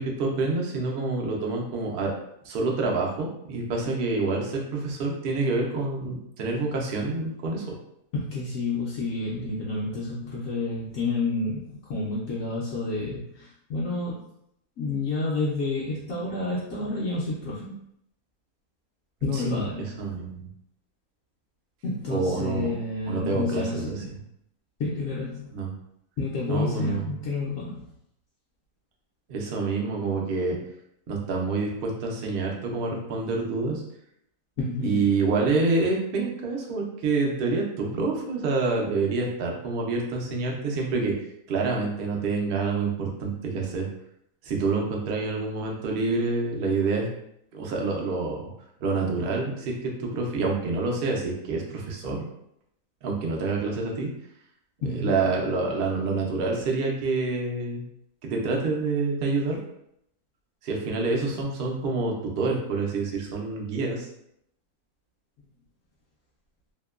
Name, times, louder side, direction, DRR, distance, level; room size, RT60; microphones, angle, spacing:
voice 1, 0.0-2.1 2.4-7.8 19.3-20.5 22.1-22.7 23.1-24.0 25.5-25.7 26.5-27.1 29.3-30.6 31.1-33.8 34.8-41.1 41.5-43.9 44.4-47.1 47.5-48.4 48.8-52.3 53.0-54.1 54.9-57.8 58.2-59.6 60.6-64.1, right 3 dB, 70° right, -1 dB, 0.5 m, -27 dB
voice 2, 8.1-14.2 14.8-17.8 19.2-19.8 21.8-24.1 24.8-25.5 26.2-27.8 34.6-35.1 54.8-55.2, left 3 dB, 70° left, -6 dB, 0.9 m, -29 dB
2.8 x 2.1 x 2.3 m, 0.75 s
omnidirectional pair, 1.6 m